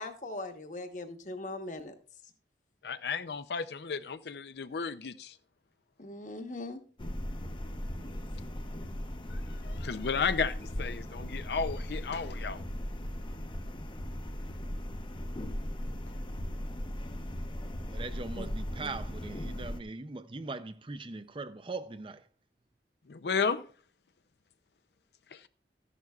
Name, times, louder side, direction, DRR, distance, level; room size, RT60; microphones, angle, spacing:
voice 1, 0.0-1.9 6.0-6.8 18.4-18.5 18.8-18.9, left 2 dB, 45° left, 1.1 m, -40 dB
voice 2, 2.8-5.4 9.3-12.6 23.1-23.6 25.3-25.4, left 5 dB, 65° left, 0.5 m, -33 dB
sound 1, 7.0-19.8, equal, 25° left, 0.7 m, -38 dB
voice 3, 17.9-22.3, right 3 dB, 30° right, 0.5 m, -40 dB
14.0 x 11.0 x 2.4 m
head